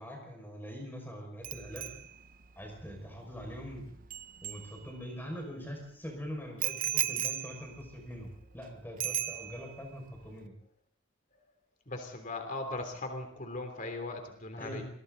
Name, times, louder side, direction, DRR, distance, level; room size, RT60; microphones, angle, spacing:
voice 1, 0.0-1.9 2.6-3.9 4.4-10.5 14.6-14.8, equal, 10° left, 1 dB, 5.8 m, -43 dB
Bicycle bell, 1.4-5.3 6.6-8.6 9.0-9.9 10.1-10.4, right 12 dB, 40° right, 0.8 m, -37 dB
voice 2, 11.9-14.8, left 2 dB, 35° left, 5 dB, 3.2 m, -39 dB
28.0 x 23.0 x 4.0 m, 0.67 s
head